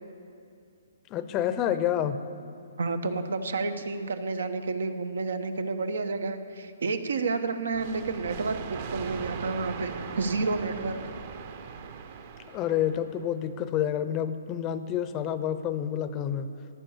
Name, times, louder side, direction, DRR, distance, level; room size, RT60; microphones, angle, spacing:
voice 1, 1.1-2.2 12.5-16.5, left 10 dB, 20° left, 11 dB, 0.7 m, -28 dB
voice 2, 2.8-11.0, right 3 dB, 75° right, 9 dB, 1.2 m, -30 dB
sound 1, 7.7-13.3, right 6 dB, 45° right, 1.0 m, -39 dB
14.5 x 9.8 x 7.3 m, 2.4 s
hypercardioid pair, 155°, 0 cm